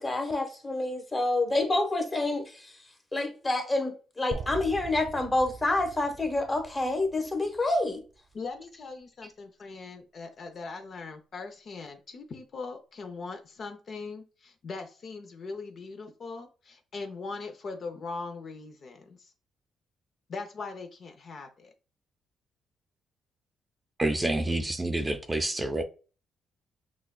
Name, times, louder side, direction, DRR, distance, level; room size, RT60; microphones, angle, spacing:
voice 1, 0.0-2.7 3.1-8.0, left 2 dB, 20° left, 1.0 m, -28 dB
sound 1, 4.3-8.3, right 4 dB, 65° right, 0.7 m, -42 dB
voice 2, 8.3-19.3 20.3-21.7 24.5-24.6, left 4 dB, 50° left, 0.5 m, -40 dB
voice 3, 24.0-25.8, right 2 dB, 20° right, 0.5 m, -28 dB
6.0 x 2.3 x 2.2 m
cardioid pair, 90°, 0 cm